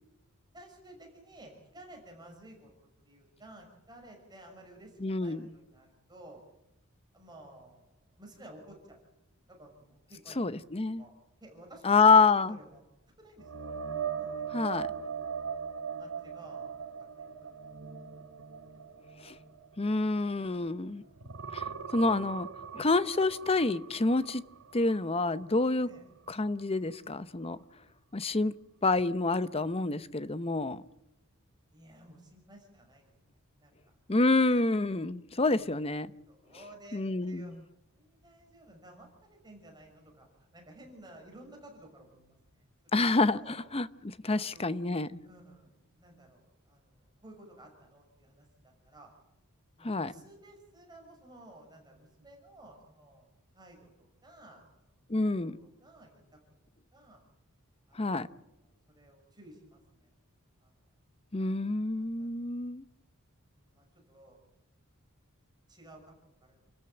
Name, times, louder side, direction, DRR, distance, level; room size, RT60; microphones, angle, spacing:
voice 1, 0.5-2.7 3.0-6.4 7.1-7.8 8.1-9.0 9.5-10.6 11.0-11.1 11.4-12.8 13.2-13.6 14.1-14.4 14.8-15.1 16.0-17.8 18.6-18.8 20.9-21.6 25.8-26.0 31.7-33.9 35.5-40.3 40.5-43.0 43.3-43.6 44.4-44.9 45.2-45.7 46.0-49.1 49.8-56.2 56.9-57.2 57.9-60.1 60.6-60.7 61.9-62.5 63.5-64.4 65.7-66.1 66.4-66.6, right 1 dB, 20° right, 6.0 m, -54 dB
voice 2, 5.0-5.5 10.4-11.0 11.8-12.6 14.5-14.9 19.2-19.3 19.8-21.0 21.5-21.6 21.9-22.5 22.7-24.4 24.7-25.9 26.3-27.6 28.1-28.5 28.8-30.8 34.1-36.1 36.9-37.6 42.9-45.1 49.8-50.1 55.1-55.5 58.0-58.3 61.3-62.8, left 3 dB, 25° left, 0.7 m, -27 dB
sound 1, 13.4-20.8 21.2-25.0 25.4-25.6 29.0-29.1, right 7 dB, 85° right, 1.8 m, -40 dB
28.5 x 14.0 x 8.9 m
head